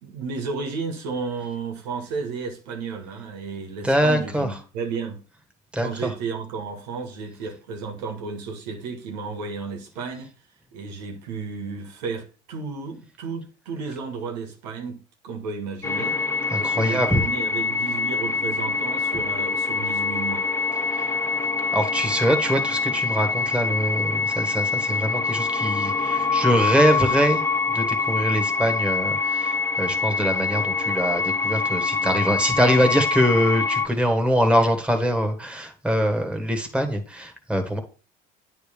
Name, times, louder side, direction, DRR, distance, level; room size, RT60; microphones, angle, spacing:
voice 1, 0.0-5.2 5.8-10.3 10.7-16.2 16.6-20.4, right 5 dB, 90° right, 1.6 m, -33 dB
voice 2, 3.8-4.5 5.7-6.1 16.5-17.2 21.0-21.1 21.7-27.4 27.7-37.8, equal, 5° right, 1.7 m, -23 dB
sound 1, 15.8-33.9, left 4 dB, 15° left, 0.9 m, -25 dB
9.0 x 3.5 x 5.0 m
supercardioid pair, 90°, 20 cm